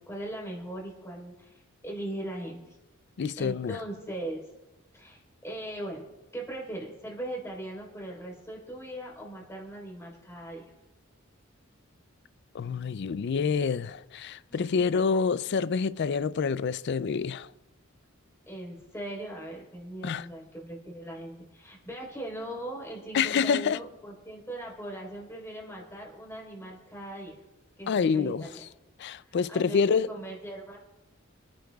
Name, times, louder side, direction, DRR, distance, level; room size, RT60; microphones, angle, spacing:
voice 1, 0.0-2.8 3.4-4.4 4.9-6.1 6.3-10.6 14.5-14.7 18.5-27.4 27.8-28.6 29.3-30.8, right 1 dB, 15° left, 4.0 m, -39 dB
voice 2, 3.2-3.8 12.5-17.5 20.0-20.3 23.1-23.8 27.9-28.5 29.0-30.1, left 5 dB, 55° left, 0.4 m, -27 dB
28.5 x 10.5 x 2.3 m
head